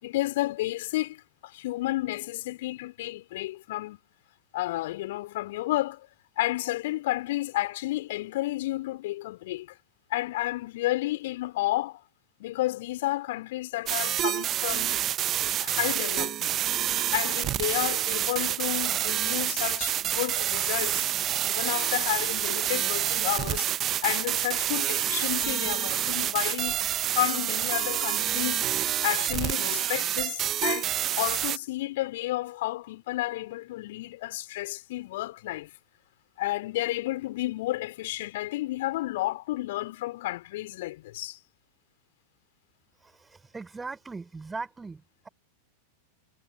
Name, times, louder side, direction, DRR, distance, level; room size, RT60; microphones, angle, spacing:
voice 1, 0.0-4.0 4.5-6.1 6.4-9.7 10.1-12.0 12.4-15.0 15.6-16.6 17.1-21.1 21.4-23.7 24.0-28.8 29.0-35.7 36.4-41.4, left 17 dB, 55° left, 3.7 m, -31 dB
sound 1, 13.9-31.6, right 11 dB, 30° right, 0.8 m, -28 dB
voice 2, 43.0-45.3, right 4 dB, 10° right, 5.4 m, -39 dB
figure-of-eight pair, 90°, 0 cm